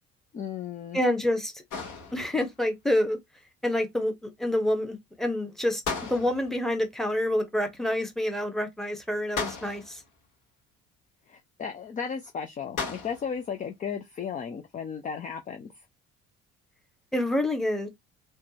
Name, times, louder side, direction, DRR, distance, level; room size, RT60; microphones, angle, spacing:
voice 1, 0.3-1.0 11.3-15.8, left 7 dB, 20° left, 0.4 m, -35 dB
voice 2, 0.9-1.5 2.1-3.2 3.6-5.8 6.1-10.0 17.1-17.9, left 1 dB, ahead, 0.9 m, -27 dB
sound 1, 1.7-2.6 5.8-6.7 9.4-10.1 12.8-13.4, left 4 dB, 50° left, 1.2 m, -35 dB
3.3 x 2.1 x 2.9 m
figure-of-eight pair, 50°, 40 cm